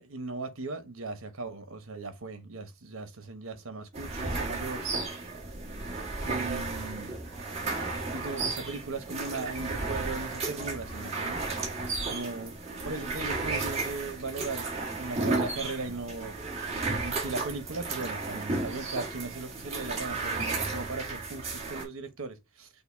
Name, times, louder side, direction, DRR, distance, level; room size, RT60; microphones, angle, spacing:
voice 1, 0.0-4.8 6.2-7.2 8.1-11.4 12.1-12.6 12.8-14.7 14.9-16.3 17.0-22.7, right 3 dB, 80° right, 1.0 m, -38 dB
sound 1, 3.9-21.9, right 3 dB, 30° right, 1.5 m, -33 dB
5.5 x 2.2 x 3.3 m
head